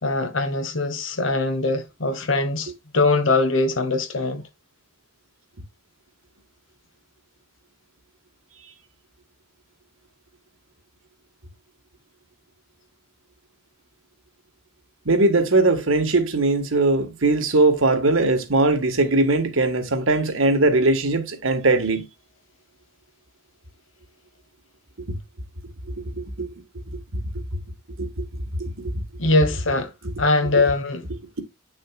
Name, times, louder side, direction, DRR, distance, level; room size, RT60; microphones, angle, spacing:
voice 1, 0.0-4.4 29.2-29.9 30.2-31.1, left 2 dB, 70° left, 1.5 m, -22 dB
voice 2, 15.0-22.0 26.2-26.5 28.0-28.2 28.6-28.9, right 2 dB, 80° right, 1.5 m, -20 dB
9.4 x 6.4 x 2.4 m
head